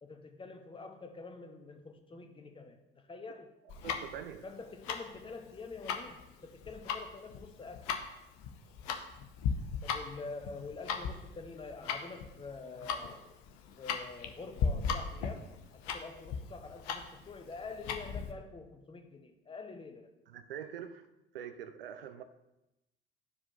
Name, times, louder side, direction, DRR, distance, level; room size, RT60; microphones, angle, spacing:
voice 1, 0.0-2.8 3.1-3.5 4.4-7.9 9.8-13.2 13.8-20.1, left 4 dB, 15° left, 4 dB, 0.8 m, -46 dB
Tick-tock, 3.7-18.3, left 6 dB, 55° left, 0.8 m, -37 dB
voice 2, 3.8-4.4 20.3-21.0 21.3-22.2, right 9 dB, 70° right, 10 dB, 0.5 m, -44 dB
12.0 x 4.8 x 2.5 m, 0.92 s
figure-of-eight pair, 60°, 29 cm